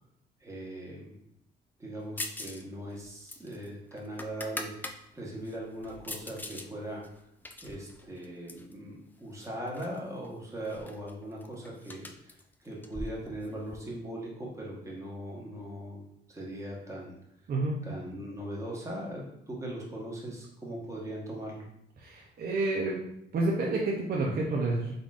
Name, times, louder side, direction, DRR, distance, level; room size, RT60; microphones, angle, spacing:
voice 1, 0.4-1.2 1.8-7.0 7.6-16.0 16.3-17.1 17.8-21.7, right 1 dB, 15° right, -3 dB, 1.1 m, -40 dB
sound 1, 2.2-2.6 2.9-5.0 5.4-6.7 7.0-8.7 9.4-10.0 10.2-10.3 10.6-13.8, left 2 dB, 10° left, 0.3 m, -42 dB
voice 2, 17.5-17.9 22.0-23.0 23.3-24.9, right 2 dB, 50° right, -2 dB, 0.6 m, -29 dB
3.8 x 3.5 x 2.4 m, 0.75 s
cardioid pair, 90°, 20 cm